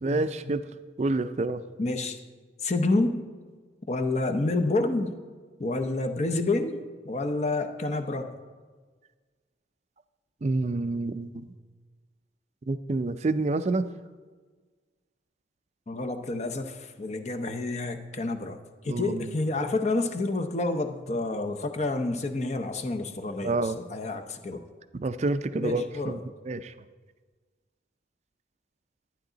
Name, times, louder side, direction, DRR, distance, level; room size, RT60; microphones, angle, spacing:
voice 1, 0.0-0.6 1.0-1.6 4.4-4.5 10.4-11.5 12.7-13.9 18.9-19.3 23.4-23.8 24.9-26.7, right 2 dB, 40° right, 12 dB, 0.4 m, -28 dB
voice 2, 1.8-2.2 2.6-3.2 3.9-5.2 5.6-6.8 7.0-8.3 15.9-18.6 18.8-24.6 25.6-26.2, left 2 dB, 40° left, 7 dB, 0.7 m, -29 dB
11.5 x 10.0 x 3.9 m, 1.4 s
head